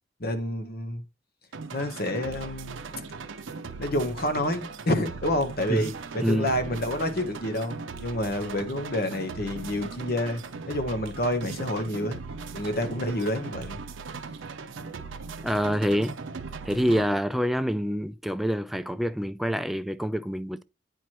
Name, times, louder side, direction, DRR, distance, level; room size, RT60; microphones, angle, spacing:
voice 1, 0.2-1.0 1.7-2.8 3.8-12.2 12.5-13.8, left 1 dB, 55° left, 1.1 m, -29 dB
sound 1, 1.5-17.1, right 4 dB, 90° right, 0.6 m, -39 dB
voice 2, 6.2-6.5 15.4-16.2 16.6-20.6, equal, ahead, 0.3 m, -26 dB
9.2 x 4.6 x 3.0 m
head